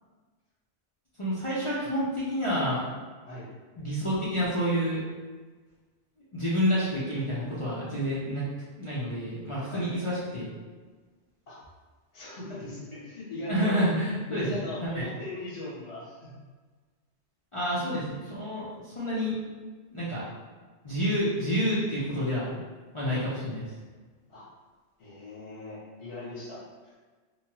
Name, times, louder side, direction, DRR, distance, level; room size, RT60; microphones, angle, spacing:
voice 1, 1.2-2.8 3.8-5.0 6.3-8.5 8.8-10.5 13.5-15.1 17.5-19.3 19.9-20.2 20.8-22.6 22.9-23.6, equal, 40° left, -10 dB, 0.4 m, -29 dB
voice 2, 12.1-13.8 14.3-16.3 23.1-23.2 24.3-24.5 25.0-27.0, left 1 dB, 80° left, -8 dB, 1.4 m, -39 dB
2.8 x 2.2 x 2.9 m, 1.4 s
omnidirectional pair, 1.2 m